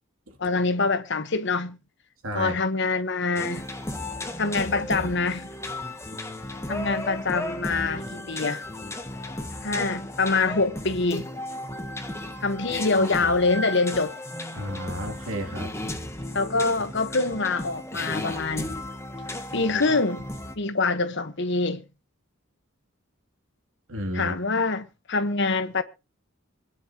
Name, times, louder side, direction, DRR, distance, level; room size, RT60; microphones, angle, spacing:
voice 1, 0.4-1.8 2.3-3.7 4.4-5.5 6.7-8.6 9.6-11.3 12.4-14.1 16.3-18.7 19.5-20.3 20.5-21.8 24.1-25.8, left 3 dB, 60° left, 1.3 m, -25 dB
voice 2, 2.2-2.5 14.5-15.7 23.9-24.4, equal, 75° right, 3.0 m, -32 dB
sound 1, 3.4-20.6, left 1 dB, 15° left, 1.2 m, -35 dB
25.5 x 9.4 x 3.0 m
head